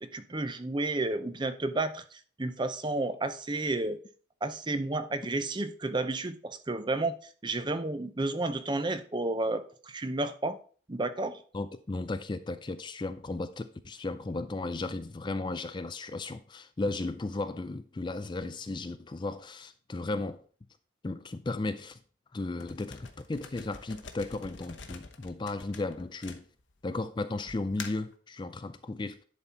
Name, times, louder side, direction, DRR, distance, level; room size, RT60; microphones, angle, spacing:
voice 1, 0.0-4.0 4.4-7.2 7.4-10.6 10.9-11.4, right 2 dB, 25° right, 0.6 m, -31 dB
voice 2, 11.5-20.4 21.0-22.0 22.3-26.4 26.8-29.2, left 2 dB, 25° left, 0.4 m, -35 dB
sound 1, 22.6-26.9 27.5-28.1, left 5 dB, 65° left, 1.0 m, -46 dB
10.5 x 4.1 x 4.5 m
head